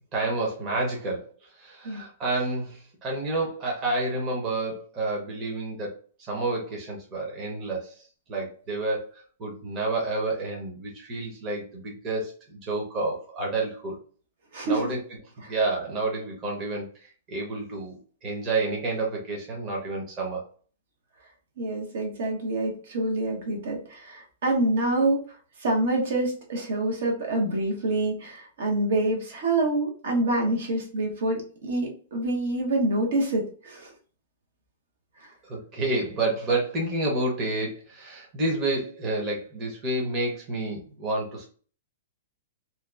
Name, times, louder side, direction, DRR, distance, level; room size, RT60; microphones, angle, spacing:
voice 1, 0.1-1.2 1.6-7.9 8.3-14.0 14.6-15.0 15.5-20.4 35.5-41.4, right 2 dB, 30° right, -2 dB, 0.9 m, -29 dB
voice 2, 14.5-14.9 15.4-15.5 21.6-25.2 25.6-33.9 35.2-35.3, right 2 dB, 70° right, 0 dB, 0.9 m, -26 dB
2.8 x 2.1 x 2.3 m, 0.42 s
hypercardioid pair, 150°, 0 cm